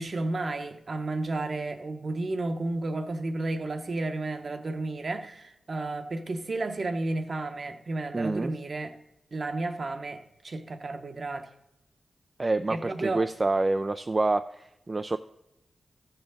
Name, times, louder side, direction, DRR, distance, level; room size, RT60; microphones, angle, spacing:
voice 1, 0.0-8.9 9.3-11.5 12.7-13.2, right 2 dB, 55° right, 0.9 m, -32 dB
voice 2, 8.1-8.5 12.4-15.2, right 2 dB, 35° right, 0.4 m, -27 dB
14.0 x 6.9 x 4.0 m
cardioid pair, 55°, 0 cm